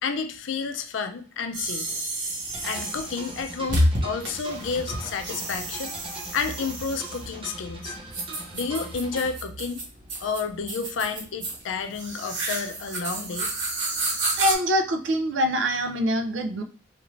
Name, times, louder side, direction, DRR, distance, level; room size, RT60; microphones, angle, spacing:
voice 1, 0.0-1.9 2.6-5.9 6.3-8.0 8.5-9.8 10.2-13.5, left 5 dB, 90° left, 7 dB, 0.4 m, -30 dB
sound 1, 1.5-14.5, right 1 dB, 65° right, 1.1 m, -31 dB
sound 2, 2.5-9.3, right 2 dB, 30° right, 0.5 m, -41 dB
voice 2, 14.4-16.6, equal, 80° right, 8 dB, 0.4 m, -24 dB
2.5 x 2.5 x 3.1 m, 0.41 s
head